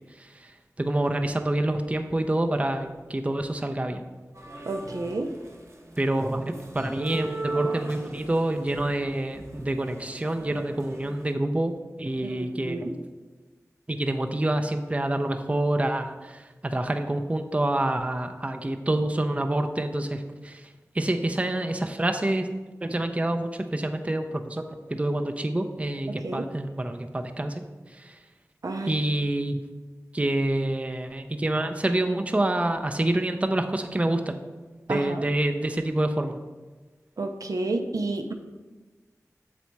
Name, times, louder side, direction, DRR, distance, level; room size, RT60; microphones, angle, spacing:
voice 1, 0.2-0.5 0.8-4.0 6.0-12.9 13.9-20.7 20.9-22.5 22.8-24.6 24.9-27.6 27.9-28.2 28.8-29.6 30.1-34.4 34.9-36.4, right 1 dB, 20° right, 6 dB, 0.5 m, -27 dB
sound 1, 4.3-5.5 5.9-11.3, right 3 dB, 50° right, 1.0 m, -37 dB
voice 2, 4.7-5.3 12.2-13.0 26.1-26.5 28.6-29.0 34.9-35.2 37.2-38.3, right 2 dB, 80° right, 4 dB, 0.6 m, -31 dB
7.2 x 4.1 x 4.5 m, 1.3 s
wide cardioid pair, 65°, 6 cm